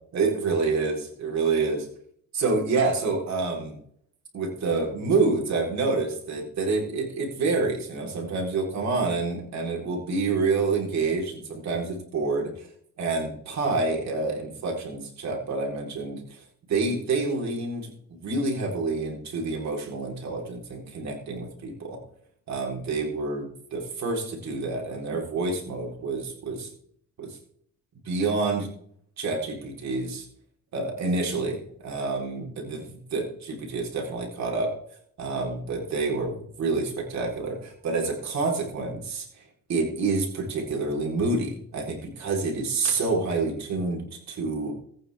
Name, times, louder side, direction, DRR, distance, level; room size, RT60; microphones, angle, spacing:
voice 1, 0.1-1.9 2.3-3.8 4.3-12.7 13.0-22.0 22.5-26.7 27.2-27.4 28.0-28.7 29.2-30.3 30.7-34.7 35.2-39.4 39.7-44.8, right 3 dB, 65° right, 0 dB, 4.3 m, -28 dB
20.0 x 9.5 x 3.6 m, 0.65 s
cardioid pair, 90°, 30 cm